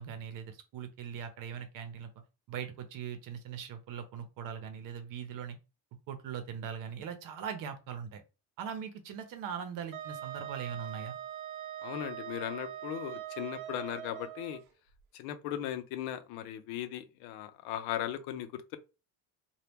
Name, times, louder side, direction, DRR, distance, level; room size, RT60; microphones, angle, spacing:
voice 1, 0.0-2.1 2.5-5.6 6.1-8.2 8.6-11.2, right 7 dB, 55° right, 0.8 m, -40 dB
Wind instrument woodwind instrument, 9.9-14.6, right 11 dB, 90° right, 0.6 m, -42 dB
voice 2, 11.8-14.6 15.1-18.8, left 11 dB, 85° left, 0.6 m, -38 dB
2.9 x 2.3 x 3.4 m
cardioid pair, 140°, 38 cm